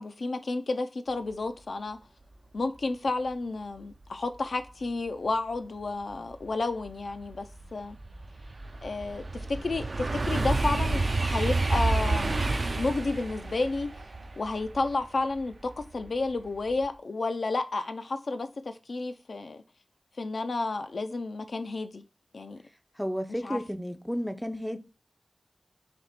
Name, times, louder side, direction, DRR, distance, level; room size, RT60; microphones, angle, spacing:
voice 1, 0.0-2.0 2.5-7.5 7.7-8.0 8.8-12.4 12.7-13.9 14.4-19.6 20.2-22.0 22.3-22.6 23.4-23.6, left 3 dB, 85° left, 0.4 m, -31 dB
sound 1, 6.4-6.5 7.0-16.1 16.5-16.9, right 2 dB, 65° right, 0.4 m, -29 dB
voice 2, 23.0-24.8, equal, ahead, 0.4 m, -32 dB
3.4 x 2.9 x 4.0 m
wide cardioid pair, 70°, 0 cm